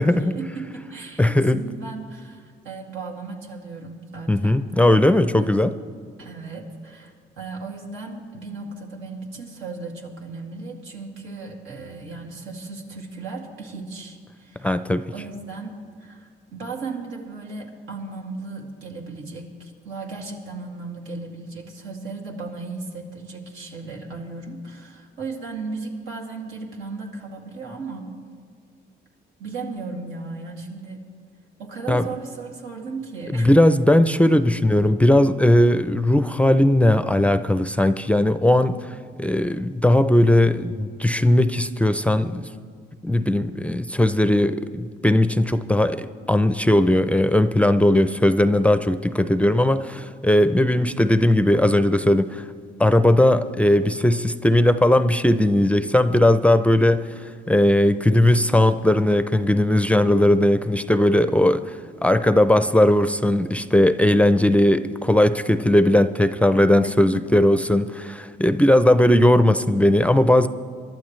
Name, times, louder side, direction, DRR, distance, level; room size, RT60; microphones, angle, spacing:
voice 1, 0.0-4.8 5.4-5.6 6.2-14.7 15.1-28.1 29.4-31.0 31.6-33.5 66.8-67.2, right 3 dB, 90° right, 0 dB, 2.3 m, -36 dB
voice 2, 1.2-1.6 4.3-5.7 14.6-15.0 31.9-32.0 33.3-38.8 39.2-42.5 43.0-52.4 52.8-57.0 57.5-70.5, left 1 dB, 5° left, 11 dB, 0.5 m, -18 dB
24.0 x 12.0 x 3.2 m, 2.1 s
cardioid pair, 90°, 20 cm